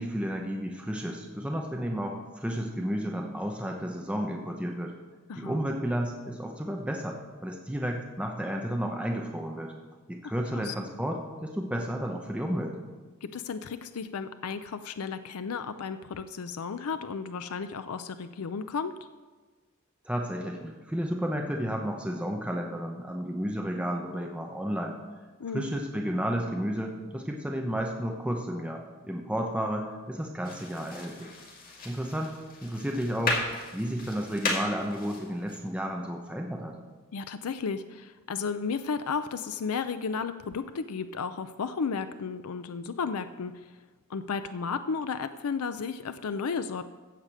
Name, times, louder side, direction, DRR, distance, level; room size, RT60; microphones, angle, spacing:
voice 1, 0.0-4.9 5.4-9.7 10.1-12.8 20.0-25.0 25.5-31.3 31.8-36.8, equal, 5° right, 1 dB, 0.8 m, -32 dB
voice 2, 5.3-5.6 10.5-10.7 13.2-18.9 25.4-25.7 37.1-43.6 44.1-46.9, left 5 dB, 80° left, 11 dB, 0.5 m, -33 dB
sound 1, 30.4-35.6, left 2 dB, 40° left, 2.1 m, -35 dB
15.0 x 5.0 x 7.5 m, 1.3 s
head